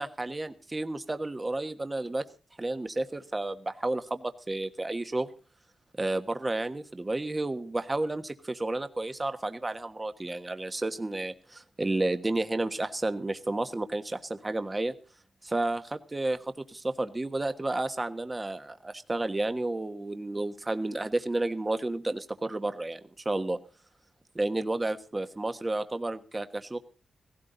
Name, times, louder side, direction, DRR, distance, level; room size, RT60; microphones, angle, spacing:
voice 1, 0.0-2.2 2.6-5.3 6.0-14.9 15.4-23.0 23.2-23.6 24.3-26.8, right 2 dB, 25° right, 9 dB, 1.3 m, -31 dB
17.5 x 16.5 x 4.0 m, 0.37 s
cardioid pair, 85°, 0 cm